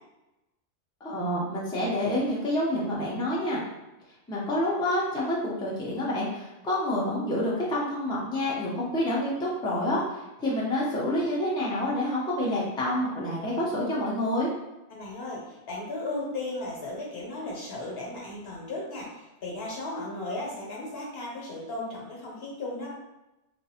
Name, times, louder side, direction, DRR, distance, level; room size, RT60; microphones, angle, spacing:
voice 1, 1.0-3.6 4.3-14.5, left 1 dB, 5° left, -6 dB, 0.6 m, -28 dB
voice 2, 14.9-22.9, left 2 dB, 65° left, -3 dB, 1.1 m, -35 dB
3.2 x 2.5 x 2.8 m, 0.98 s
omnidirectional pair, 1.1 m